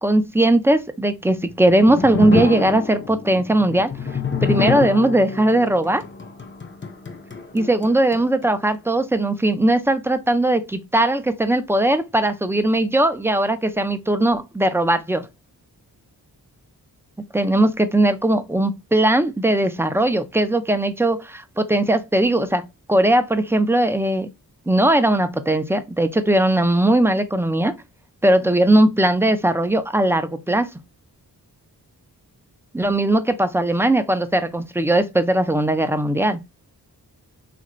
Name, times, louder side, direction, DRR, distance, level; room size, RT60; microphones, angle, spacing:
voice 1, 0.0-3.9 4.4-6.0 7.5-15.2 17.3-22.6 22.9-24.3 24.7-27.7 28.2-30.7 32.7-36.4, right 1 dB, 5° right, 0.4 m, -19 dB
sound 1, 1.3-8.5, left 5 dB, 30° left, 0.7 m, -28 dB
3.2 x 2.5 x 2.9 m
wide cardioid pair, 60°, 41 cm